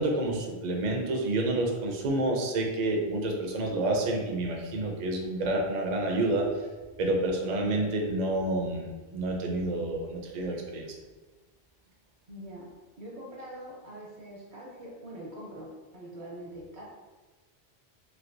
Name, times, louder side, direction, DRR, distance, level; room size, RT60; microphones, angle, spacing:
voice 1, 0.0-6.5 7.0-10.9, right 2 dB, 55° right, 1 dB, 0.5 m, -29 dB
voice 2, 12.3-12.7 13.0-16.8, right 1 dB, 85° right, -4 dB, 1.3 m, -43 dB
3.2 x 2.9 x 2.6 m, 1.2 s
omnidirectional pair, 1.1 m